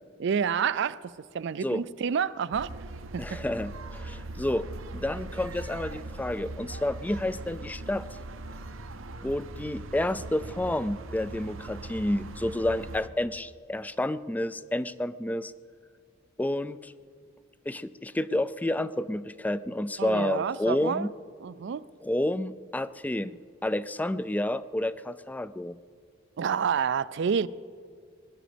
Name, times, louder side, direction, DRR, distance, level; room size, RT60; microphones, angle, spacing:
voice 1, 0.2-1.0 1.3-2.7 3.1-3.4 20.0-21.1 21.4-21.8 26.4-27.5, right 7 dB, 60° right, 0.4 m, -28 dB
sound 1, 2.5-13.1, right 2 dB, 80° right, 0.8 m, -40 dB
voice 2, 3.2-4.7 4.9-8.1 9.2-15.5 16.4-16.9 17.7-21.1 22.0-25.8, left 1 dB, 10° left, 0.3 m, -30 dB
21.5 x 11.0 x 5.1 m
head